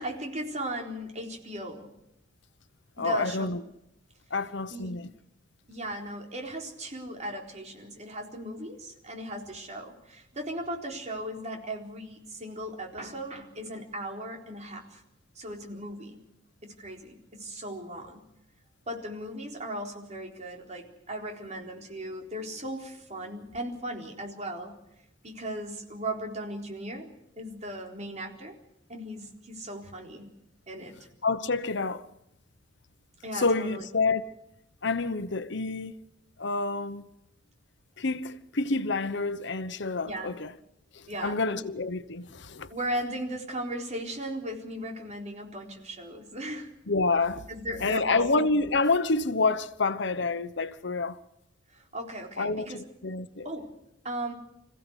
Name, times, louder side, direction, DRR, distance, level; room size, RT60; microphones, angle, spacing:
voice 1, 0.0-1.9 3.0-3.6 4.7-4.9 5.7-15.0 15.4-16.2 16.6-18.2 18.9-24.7 25.2-27.1 27.4-28.5 28.9-30.3 30.7-30.9 33.2-33.8 40.0-40.3 41.1-41.7 42.7-46.7 47.5-48.3 51.7-52.8 53.4-53.7 54.0-54.3, right 1 dB, 40° right, 4.1 m, -37 dB
voice 2, 3.0-3.6 4.3-5.1 31.2-32.1 33.3-34.3 34.8-35.9 36.4-37.1 38.0-40.5 40.9-42.7 46.9-47.4 47.8-51.2 52.4-53.5, left 3 dB, 70° left, 1.1 m, -28 dB
26.0 x 15.5 x 8.2 m
head